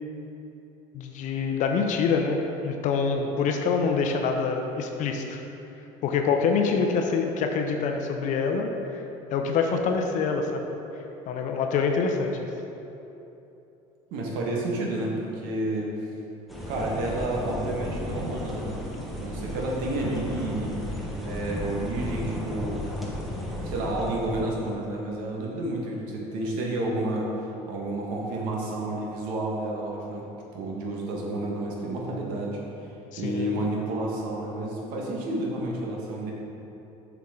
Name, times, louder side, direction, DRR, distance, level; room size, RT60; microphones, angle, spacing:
voice 1, 0.9-5.4 6.0-9.0 9.3-10.6 11.3-12.5 20.0-20.3 33.1-33.5, left 5 dB, 55° left, 4 dB, 0.7 m, -26 dB
voice 2, 14.1-15.9 16.7-18.7 19.1-20.8 21.1-22.9 23.6-27.3 27.7-30.3 30.5-32.6 33.2-36.3, right 1 dB, 75° right, -2 dB, 1.5 m, -30 dB
sound 1, 16.5-24.6, equal, ahead, 1.2 m, -34 dB
7.3 x 5.9 x 3.8 m, 3.0 s
supercardioid pair, 110°, 15 cm